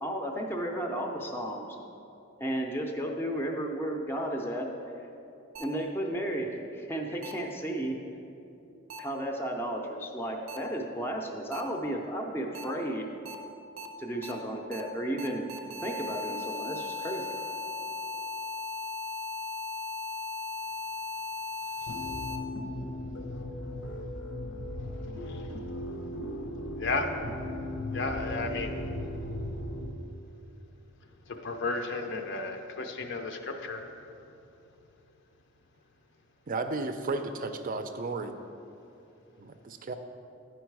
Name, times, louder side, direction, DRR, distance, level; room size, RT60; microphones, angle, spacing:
voice 1, 0.0-1.7 2.4-4.7 5.6-8.0 9.0-13.1 14.0-15.5 15.8-17.4, right 1 dB, 10° left, 1 dB, 0.5 m, -33 dB
sound 1, 5.6-5.7 7.2-7.3 8.9-9.0 10.5-10.6 11.5-11.6 12.6-12.7 13.3-13.4 13.8-13.9 14.2-14.3 14.7-14.8 15.2-22.4, left 3 dB, 90° right, 0.6 m, -37 dB
sound 2, 21.9-29.9, left 1 dB, 85° left, 0.9 m, -37 dB
voice 2, 27.9-28.8 31.4-33.8, left 3 dB, 60° left, 5 dB, 0.5 m, -33 dB
voice 3, 36.5-38.3 39.4-39.9, right 3 dB, 45° right, 8 dB, 0.5 m, -33 dB
10.0 x 4.6 x 4.7 m, 2.7 s
head